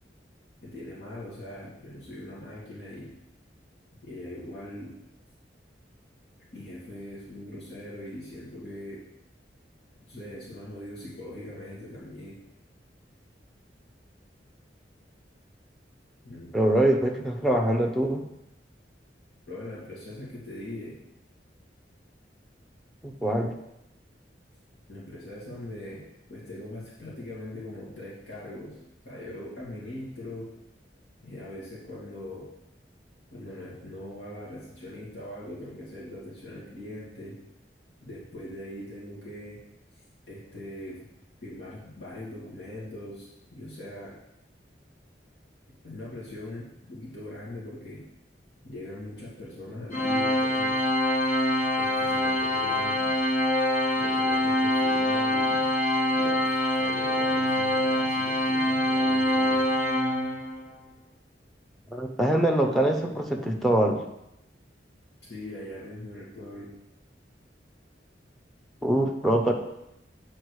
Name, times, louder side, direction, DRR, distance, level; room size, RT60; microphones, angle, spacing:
voice 1, 0.6-3.1 4.0-4.9 6.5-9.0 10.1-12.4 16.2-16.5 19.5-21.0 24.9-26.0 26.3-28.8 29.0-30.5 31.2-32.5 33.3-37.3 38.0-39.6 40.3-41.0 41.4-44.2 45.8-48.0 48.6-50.8 51.8-53.1 54.0-55.6 56.1-59.7 65.3-66.7, left 1 dB, 70° left, -7 dB, 2.4 m, -41 dB
voice 2, 16.5-18.3 23.0-23.5 61.9-64.0 68.8-69.5, right 1 dB, ahead, 2 dB, 0.8 m, -24 dB
Organ, 49.9-60.7, left 1 dB, 45° left, 0.9 m, -25 dB
8.6 x 4.4 x 4.8 m, 0.86 s
head